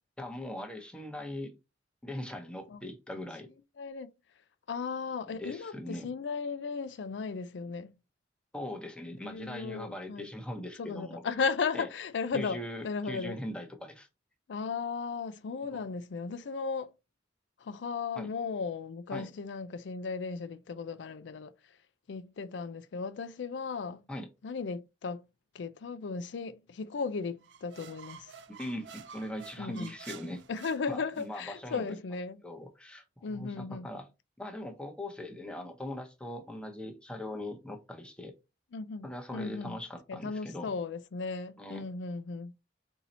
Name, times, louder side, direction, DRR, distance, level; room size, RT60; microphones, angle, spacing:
voice 1, 0.2-1.6 2.0-3.5 5.3-6.1 8.5-11.2 11.7-11.9 12.3-14.1 15.7-15.8 18.1-18.3 19.1-19.3 24.1-24.3 28.5-30.4 30.9-32.0 32.4-34.1 34.4-38.3 39.0-40.7 41.6-41.8, left 1 dB, 5° left, 0.8 m, -40 dB
voice 2, 3.8-4.1 4.7-7.9 9.2-10.3 10.8-12.6 12.8-13.4 14.5-16.9 17.6-21.5 22.1-24.0 24.4-25.2 25.5-28.3 29.6-29.9 30.5-32.4 33.2-33.9 38.7-39.1 39.3-39.7 40.1-42.5, left 5 dB, 85° left, 0.4 m, -36 dB
sound 1, 27.4-31.5, right 7 dB, 80° right, 0.5 m, -50 dB
4.1 x 2.8 x 4.1 m
head